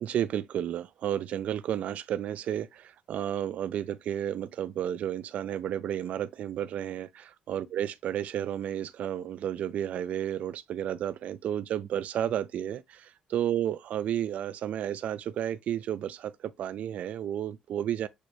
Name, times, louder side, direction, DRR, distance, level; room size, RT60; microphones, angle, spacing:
voice 1, 0.0-18.1, right 10 dB, 65° right, 0.3 m, -32 dB
6.5 x 2.2 x 3.1 m
cardioid pair, 85°, 3 cm